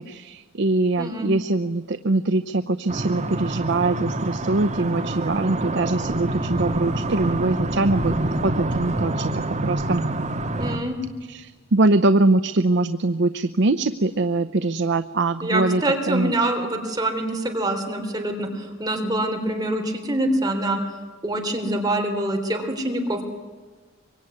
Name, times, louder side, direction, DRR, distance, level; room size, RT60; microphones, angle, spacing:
voice 1, 0.0-8.1 8.4-10.0 11.3-16.3, right 2 dB, 60° right, 12 dB, 0.7 m, -22 dB
voice 2, 1.0-1.3 10.6-11.0 15.4-20.8 21.2-23.2, right 1 dB, 20° right, 3 dB, 3.4 m, -25 dB
sound 1, 2.9-10.8, right 1 dB, 35° right, 1.8 m, -26 dB
25.0 x 24.0 x 9.6 m, 1.4 s
head